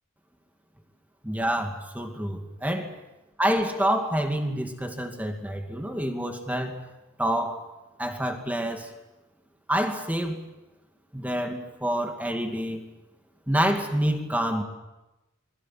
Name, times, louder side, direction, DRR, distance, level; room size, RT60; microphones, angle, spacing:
voice 1, 1.2-2.9 3.4-6.7 7.2-7.6 8.0-8.9 9.7-10.4 11.1-12.8 13.5-14.6, equal, 5° right, 4 dB, 2.5 m, -27 dB
28.0 x 21.5 x 7.7 m, 1.0 s
head